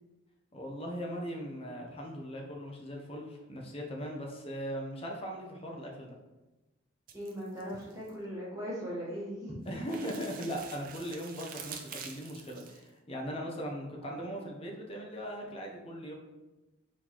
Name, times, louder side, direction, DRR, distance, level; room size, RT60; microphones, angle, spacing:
voice 1, 0.5-6.2 9.7-16.1, equal, 30° left, 0 dB, 0.8 m, -39 dB
voice 2, 7.1-9.5 14.0-14.2, equal, 15° right, -7 dB, 1.2 m, -39 dB
sound 1, 7.1-8.1 9.7-12.8, right 7 dB, 45° right, 0.5 m, -46 dB
4.4 x 3.9 x 3.0 m, 1.1 s
head